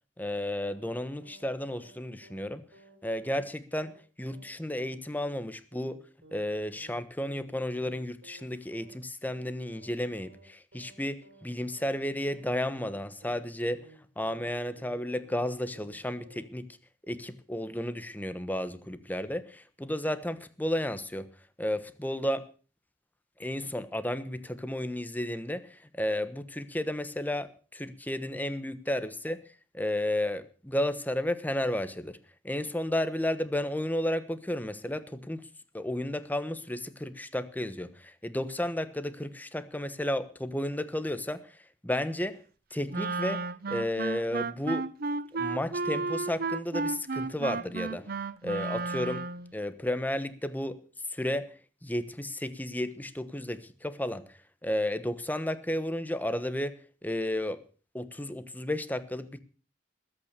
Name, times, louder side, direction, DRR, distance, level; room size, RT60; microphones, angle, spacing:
voice 1, 0.2-2.6 3.0-6.0 6.3-13.8 14.2-16.7 17.0-21.3 21.6-22.5 23.4-29.4 29.7-32.2 32.4-35.5 35.7-41.6 41.8-42.4 42.7-43.4 43.7-44.9 45.3-49.3 49.5-50.8 51.1-51.5 51.8-56.7 57.0-57.6 57.9-59.4, left 1 dB, 10° left, 11 dB, 1.2 m, -33 dB
sound 1, 0.7-1.0 1.2-1.5 1.7-2.0 2.2-2.5 2.7-3.0 3.2-3.5 3.7-4.0 4.2-4.5 4.7-5.0 5.2-5.5 5.7-6.0 6.2-6.5 6.7-7.0 7.2-7.5 7.7-8.0 8.2-8.5 8.7-9.0 9.2-9.5 9.7-10.0 10.2-10.5 10.7-11.0 11.2-11.5 11.7-12.0 12.2-12.5 12.7-13.0 13.2-13.5 13.7-14.0 14.2-14.5 14.7-15.0 15.2-15.5 15.7-16.5, right 2 dB, 80° right, 4.5 m, -55 dB
Wind instrument woodwind instrument, 42.9-49.5, right 4 dB, 50° right, 0.7 m, -33 dB
20.5 x 8.9 x 6.8 m, 0.39 s
head